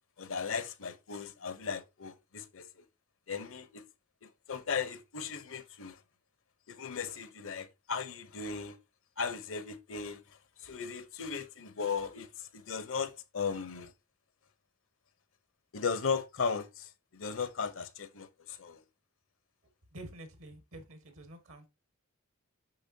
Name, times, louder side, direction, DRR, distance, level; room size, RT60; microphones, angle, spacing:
voice 1, 0.2-2.7 3.3-3.8 4.2-6.0 6.7-8.8 9.2-10.2 10.6-13.9 15.7-18.8, left 5 dB, 65° left, 0.8 m, -37 dB
voice 2, 19.9-21.7, right 1 dB, 65° right, 1.6 m, -48 dB
6.8 x 5.8 x 2.7 m
head